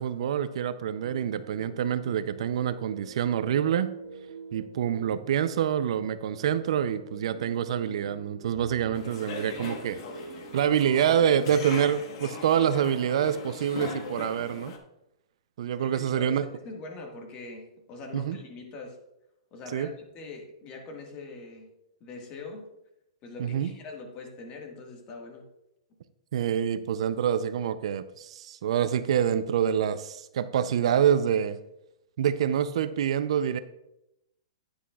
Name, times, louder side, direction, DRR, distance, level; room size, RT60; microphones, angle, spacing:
voice 1, 0.0-3.9 4.5-10.0 10.5-14.7 15.6-16.5 18.1-18.4 19.7-19.9 23.4-23.7 26.3-31.6 32.2-33.6, right 9 dB, 60° right, 13 dB, 0.5 m, -26 dB
sound 1, 0.8-12.0, right 5 dB, 20° right, 2.3 m, -46 dB
sound 2, 8.9-14.8, left 4 dB, 50° left, 1.2 m, -39 dB
voice 2, 15.8-19.0 19.5-21.7 22.0-22.6 23.2-25.4, left 3 dB, 30° left, 2 dB, 1.6 m, -42 dB
9.9 x 9.5 x 2.3 m, 0.85 s
hypercardioid pair, 155°, 3 cm